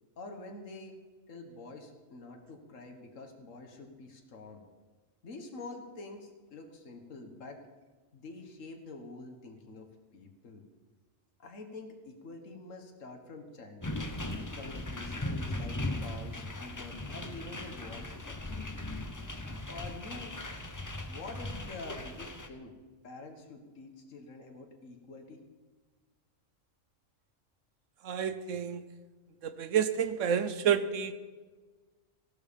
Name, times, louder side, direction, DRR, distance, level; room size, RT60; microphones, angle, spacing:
voice 1, 0.2-1.0 1.3-4.6 5.2-7.6 8.1-10.7 11.4-14.1 14.5-18.7 19.7-20.4 21.1-22.8 23.0-25.4, left 3 dB, 75° left, 4 dB, 1.9 m, -47 dB
sound 1, 13.8-22.5, left 1 dB, 15° left, 0.8 m, -38 dB
voice 2, 28.0-28.8 29.4-31.1, right 8 dB, 75° right, 12 dB, 1.2 m, -29 dB
16.0 x 12.0 x 5.3 m, 1.4 s
omnidirectional pair, 1.3 m